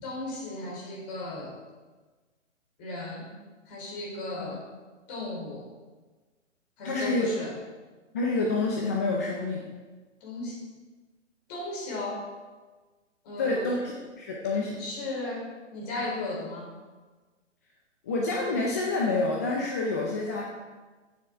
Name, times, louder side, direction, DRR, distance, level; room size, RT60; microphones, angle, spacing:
voice 1, 0.0-1.5 2.8-3.3 3.7-4.6 5.1-5.7 6.8-7.5 10.2-10.6 11.5-12.3 13.2-13.7 14.8-16.7, left 2 dB, 30° left, -1 dB, 4.0 m, -35 dB
voice 2, 6.8-7.3 8.1-9.6 13.4-13.8 14.2-14.8 18.1-20.4, left 3 dB, 15° left, -2 dB, 0.5 m, -27 dB
14.5 x 7.8 x 4.7 m, 1.3 s
hypercardioid pair, 150°, 38 cm